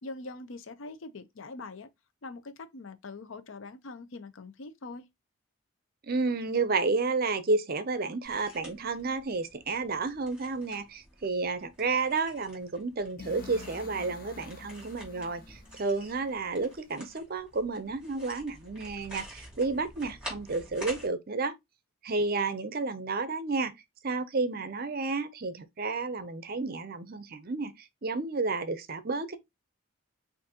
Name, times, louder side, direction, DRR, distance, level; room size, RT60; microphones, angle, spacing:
voice 1, 0.0-1.9 2.2-5.1, left 3 dB, 65° left, 0.6 m, -43 dB
voice 2, 6.0-21.5 22.0-23.7 24.0-29.4, right 3 dB, 45° right, 0.6 m, -31 dB
sound 1, 8.2-21.1, equal, 5° right, 2.9 m, -49 dB
sound 2, 13.2-17.1, left 3 dB, 40° left, 0.9 m, -48 dB
6.0 x 2.6 x 2.8 m
head